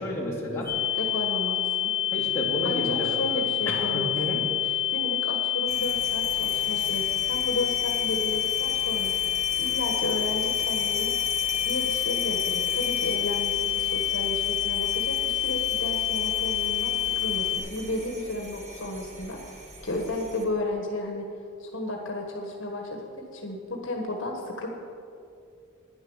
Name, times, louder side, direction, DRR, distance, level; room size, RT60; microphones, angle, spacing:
voice 1, 0.0-0.6 2.1-3.1 3.7-4.8, left 1 dB, 15° left, -7 dB, 2.9 m, -31 dB
voice 2, 0.5-1.9 2.6-4.4 4.9-9.1 9.6-11.1 11.6-21.2 21.6-24.7, left 1 dB, 65° left, 1 dB, 1.4 m, -33 dB
sound 1, 0.7-17.6, left 13 dB, 20° right, 3.2 m, -27 dB
sound 2, 5.7-20.4, right 2 dB, 35° right, 1.5 m, -40 dB
10.5 x 10.0 x 6.3 m, 2.5 s
head